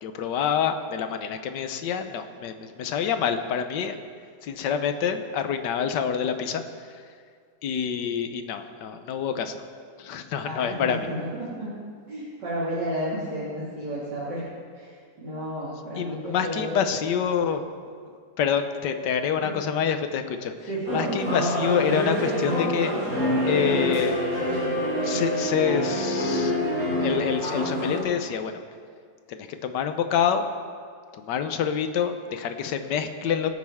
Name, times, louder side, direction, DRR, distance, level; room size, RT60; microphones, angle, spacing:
voice 1, 0.0-4.0 4.4-6.6 7.6-9.6 10.0-11.1 16.0-17.6 18.4-20.5 20.9-22.9 23.4-24.2 25.0-26.6 27.0-28.6 29.3-30.5 31.1-33.5, left 7 dB, 90° left, 8 dB, 1.4 m, -27 dB
voice 2, 10.4-11.7 12.1-14.4 14.7-16.8 19.4-19.5 20.7-21.2, equal, 80° right, -9 dB, 2.9 m, -32 dB
sound 1, 20.9-28.0, left 1 dB, 55° right, 4.3 m, -26 dB
20.5 x 8.6 x 3.5 m, 2.1 s
omnidirectional pair, 1.8 m